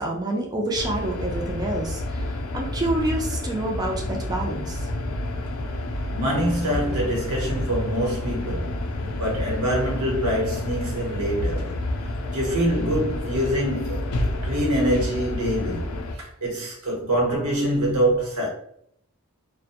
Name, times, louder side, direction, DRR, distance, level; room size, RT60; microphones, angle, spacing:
voice 1, 0.0-4.9, right 1 dB, 20° right, 0.4 m, -28 dB
sound 1, 0.8-16.2, left 1 dB, 80° left, 0.4 m, -29 dB
voice 2, 6.1-11.8 12.3-18.5, equal, 85° right, 0.9 m, -25 dB
2.4 x 2.1 x 2.8 m
head